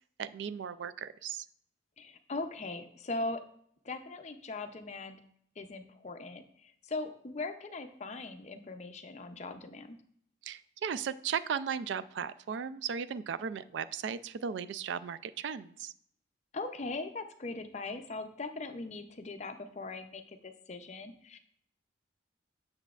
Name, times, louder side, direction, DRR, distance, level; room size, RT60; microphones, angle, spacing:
voice 1, 0.2-1.5 10.4-15.9, right 7 dB, 70° right, 15 dB, 0.3 m, -36 dB
voice 2, 2.0-3.4 3.8-5.2 5.6-10.0 16.5-21.4, left 3 dB, 35° left, 8 dB, 0.5 m, -40 dB
8.0 x 6.7 x 2.4 m, 0.66 s
head